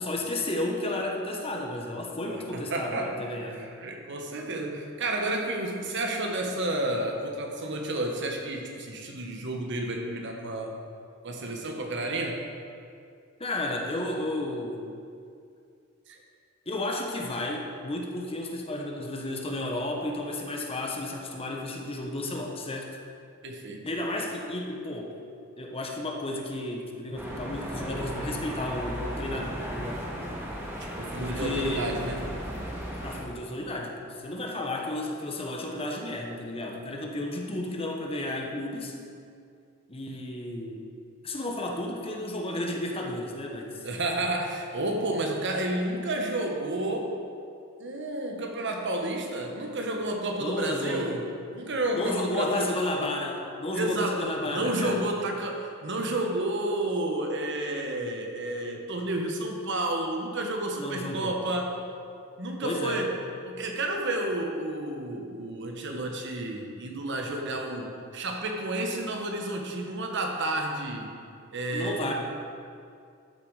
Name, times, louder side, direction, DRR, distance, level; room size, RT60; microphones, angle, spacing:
voice 1, 0.0-3.6 13.4-14.9 16.7-23.0 23.8-25.2 25.6-30.1 31.1-32.0 33.0-39.0 39.9-40.8 41.2-43.8 50.4-51.1 51.9-55.0 60.8-61.4 62.6-63.1 71.7-72.1, left 1 dB, 30° left, 1 dB, 1.1 m, -32 dB
voice 2, 2.2-3.2 3.5-10.7 11.2-12.4 16.1-16.2 23.4-23.8 30.8-32.2 43.8-47.2 47.8-51.2 51.5-52.7 53.8-61.7 62.4-63.1 63.4-71.1 71.5-72.1, right 1 dB, 60° right, 2 dB, 1.4 m, -31 dB
sound 1, 27.1-33.2, equal, 10° right, 2.1 m, -35 dB
12.5 x 7.1 x 4.9 m, 2.4 s
head